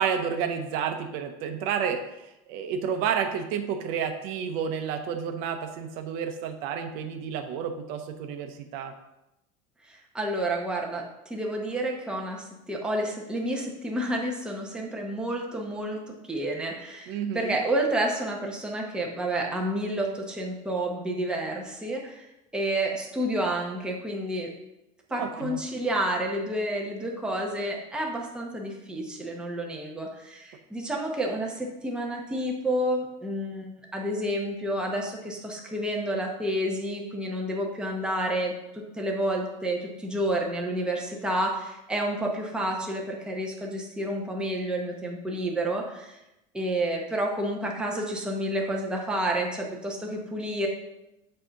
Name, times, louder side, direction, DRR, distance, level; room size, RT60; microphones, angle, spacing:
voice 1, 0.0-2.0 2.5-8.9 17.1-17.6 25.1-25.6, right 7 dB, 65° right, 6 dB, 0.7 m, -30 dB
voice 2, 10.1-22.2 22.5-24.5 25.1-46.2 46.5-50.7, right 1 dB, 5° right, -1 dB, 0.9 m, -30 dB
7.6 x 2.8 x 5.7 m, 0.92 s
cardioid pair, 150°, 17 cm